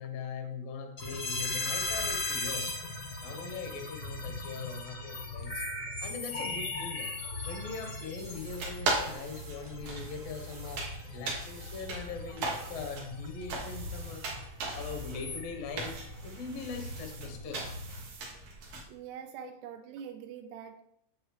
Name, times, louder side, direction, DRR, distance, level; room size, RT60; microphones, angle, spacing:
voice 1, 0.0-2.7 3.2-5.6 6.0-7.1 7.4-10.9 11.1-14.2 14.7-15.9 16.2-17.6 19.4-19.5, left 5 dB, 80° left, 3 dB, 1.4 m, -41 dB
sound 1, 1.0-18.0, left 2 dB, 45° left, 1.0 m, -39 dB
sound 2, 8.2-18.8, right 3 dB, 60° right, 2.0 m, -39 dB
voice 2, 18.9-20.8, right 8 dB, 80° right, 5 dB, 2.5 m, -44 dB
8.7 x 7.3 x 3.3 m, 0.73 s
omnidirectional pair, 5.1 m